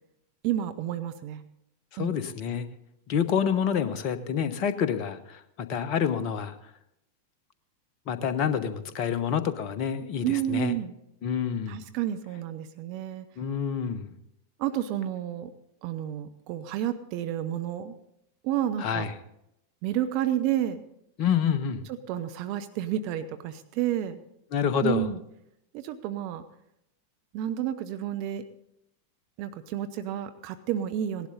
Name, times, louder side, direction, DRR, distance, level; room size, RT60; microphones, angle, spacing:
voice 1, 0.4-1.4 2.0-2.2 10.2-10.9 11.7-13.3 14.6-15.5 15.8-17.9 18.4-19.1 19.8-20.8 22.1-24.2 24.8-25.2 25.7-26.4 27.3-28.4 29.4-31.3, right 11 dB, 45° right, 9 dB, 0.8 m, -30 dB
voice 2, 1.9-2.7 3.1-6.5 8.1-10.8 11.2-11.8 13.4-14.1 18.8-19.1 21.2-21.9 24.5-25.1, left 7 dB, 40° left, 11 dB, 1.1 m, -28 dB
18.0 x 11.5 x 3.9 m, 0.80 s
figure-of-eight pair, 90°, 0 cm